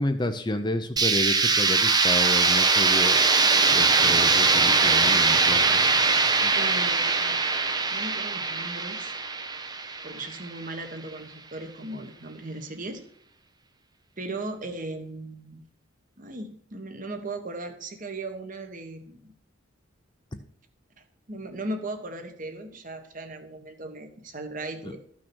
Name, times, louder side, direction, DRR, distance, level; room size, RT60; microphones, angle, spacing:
voice 1, 0.0-3.3 3.7-5.8 6.4-6.5 24.8-24.9, left 1 dB, 20° left, 7 dB, 0.6 m, -30 dB
sound 1, 1.0-10.7, right 4 dB, 20° right, 0.7 m, -22 dB
voice 2, 6.5-9.2 10.0-13.0 14.2-15.6 16.2-19.3 21.3-25.0, right 2 dB, 40° right, 7 dB, 1.5 m, -37 dB
13.5 x 6.2 x 6.2 m, 0.64 s
head